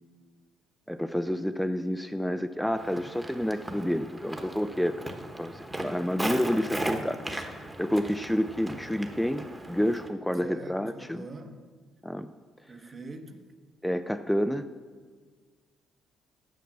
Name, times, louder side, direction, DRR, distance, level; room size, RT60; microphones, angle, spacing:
voice 1, 0.9-11.3 12.0-12.3 12.8-12.9 13.8-14.7, equal, 5° left, 9 dB, 0.4 m, -29 dB
Walk footsteps, 2.7-10.1, right 1 dB, 15° right, 1.2 m, -37 dB
voice 2, 10.4-11.7 12.7-13.5, right 2 dB, 40° right, 6 dB, 1.1 m, -43 dB
9.1 x 7.2 x 6.0 m, 1.5 s
cardioid pair, 85°, 0 cm